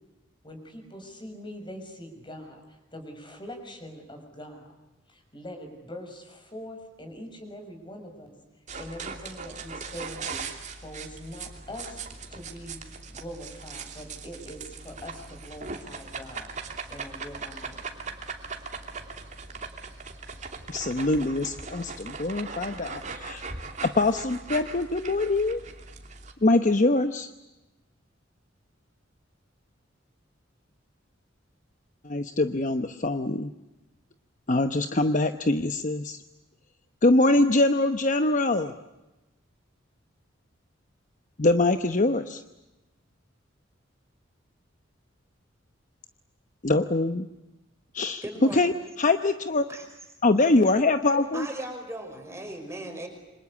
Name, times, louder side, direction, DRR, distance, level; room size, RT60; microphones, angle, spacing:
voice 1, 0.4-4.7 5.1-8.3 8.8-10.5 10.8-12.0 12.3-12.8 13.1-16.5 16.9-17.8, equal, 25° left, 6 dB, 6.2 m, -43 dB
sound 1, 8.7-26.3, right 4 dB, 40° right, 2.9 m, -39 dB
voice 2, 20.7-23.4 23.8-25.6 26.4-27.3 32.0-33.5 34.5-36.2 37.0-38.7 41.4-42.4 46.6-47.3 47.9-48.2 48.5-49.6 50.2-51.5, left 2 dB, 40° left, 9 dB, 1.0 m, -23 dB
voice 3, 48.2-48.8 49.7-49.8 51.3-53.1, right 1 dB, 15° right, 4 dB, 5.7 m, -37 dB
28.0 x 25.5 x 8.4 m, 1.0 s
head